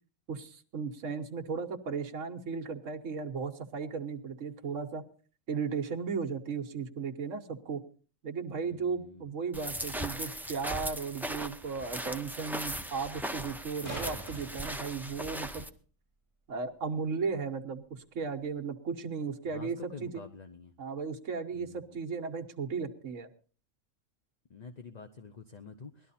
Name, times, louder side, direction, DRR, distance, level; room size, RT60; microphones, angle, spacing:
voice 1, 0.3-5.1 5.5-7.8 8.2-15.7 16.5-20.2 20.8-23.3, right 5 dB, 65° right, 6 dB, 1.5 m, -36 dB
voice 2, 8.6-9.3 19.5-20.7 21.5-22.0 24.5-26.1, left 5 dB, 40° left, 8 dB, 0.7 m, -48 dB
sound 1, 9.5-15.7, right 1 dB, ahead, 0.4 m, -38 dB
sound 2, 13.6-15.6 18.5-18.6, right 2 dB, 20° left, 5.5 m, -44 dB
18.5 x 12.0 x 4.2 m, 0.41 s
omnidirectional pair, 1.5 m